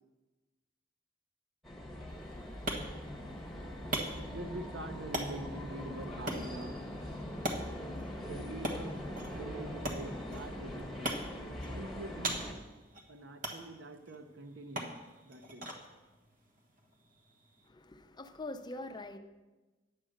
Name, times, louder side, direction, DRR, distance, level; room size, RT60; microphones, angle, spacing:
sound 1, 1.6-12.5, left 1 dB, ahead, 1.6 m, -42 dB
sound 2, 2.1-17.7, right 1 dB, 45° right, 1.3 m, -43 dB
voice 1, 3.5-7.1 8.2-11.2 11.6-12.5 13.1-15.0 15.2-15.7, right 2 dB, 80° right, 7 dB, 0.9 m, -45 dB
voice 2, 17.7-19.2, left 2 dB, 25° left, 6 dB, 0.6 m, -43 dB
9.7 x 7.6 x 6.4 m, 1.2 s
head